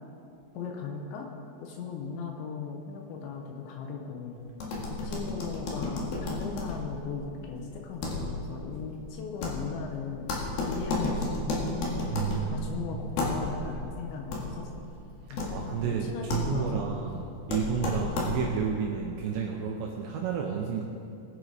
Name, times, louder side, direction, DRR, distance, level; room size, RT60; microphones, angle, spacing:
voice 1, 0.5-1.3 1.6-4.4 4.9-10.3 10.7-11.7 12.5-14.9 15.3-16.9, left 5 dB, 75° left, 1 dB, 2.9 m, -38 dB
sound 1, 4.5-18.7, left 2 dB, 55° left, 3.1 m, -33 dB
voice 2, 12.1-13.2 15.5-20.8, right 7 dB, 80° right, 1 dB, 2.6 m, -31 dB
20.5 x 7.9 x 4.9 m, 2.7 s
omnidirectional pair, 5.9 m